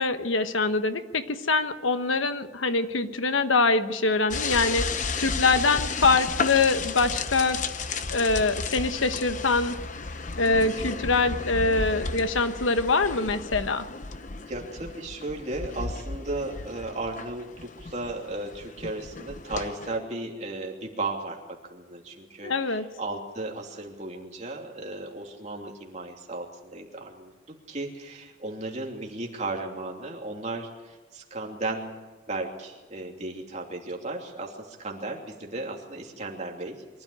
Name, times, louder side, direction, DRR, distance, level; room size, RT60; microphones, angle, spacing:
voice 1, 0.0-7.6 8.1-9.8 10.4-13.8 22.4-22.8, left 3 dB, 90° left, 9 dB, 1.2 m, -24 dB
sound 1, 4.3-20.0, left 4 dB, 40° left, 0.9 m, -33 dB
voice 2, 14.5-32.0 32.3-36.8, right 2 dB, 35° right, 0 dB, 2.9 m, -35 dB
23.5 x 13.0 x 9.9 m, 1.3 s
head